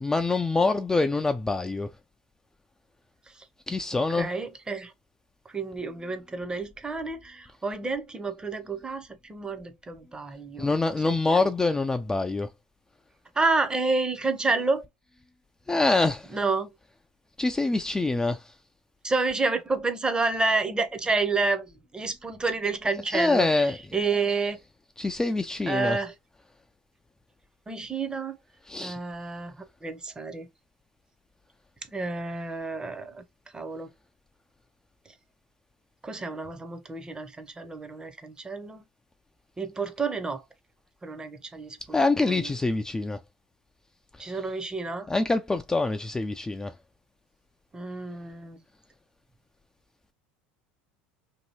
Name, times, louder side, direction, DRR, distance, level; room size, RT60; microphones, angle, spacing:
voice 1, 0.0-1.9 3.7-4.3 10.6-12.5 15.7-16.3 17.4-18.4 23.1-23.8 25.0-26.0 28.7-29.0 41.9-43.2 45.1-46.7, left 3 dB, 10° left, 0.3 m, -25 dB
voice 2, 4.1-4.9 5.5-11.5 13.4-14.8 16.3-16.7 19.0-24.6 25.7-26.1 27.7-28.4 28.8-29.5 29.8-30.5 31.9-33.2 33.5-33.9 36.0-38.8 39.6-40.4 41.0-42.5 44.2-45.1 47.7-48.6, right 3 dB, 15° right, 0.7 m, -29 dB
2.8 x 2.6 x 2.8 m
hypercardioid pair, 80°, 5 cm